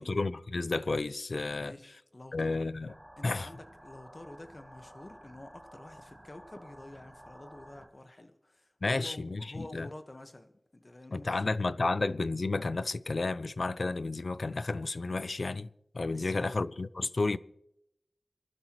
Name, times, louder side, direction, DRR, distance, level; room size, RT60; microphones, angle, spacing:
voice 1, 0.0-1.7 2.3-2.9 3.2-3.5 8.8-9.9 11.1-15.7 15.9-17.4, left 3 dB, 65° left, 0.5 m, -31 dB
voice 2, 1.5-2.6 3.2-11.7 16.1-16.5, left 1 dB, 35° left, 1.4 m, -49 dB
sound 1, 2.9-7.9, equal, 5° right, 2.5 m, -53 dB
26.0 x 12.0 x 3.1 m
wide cardioid pair, 75°, 0 cm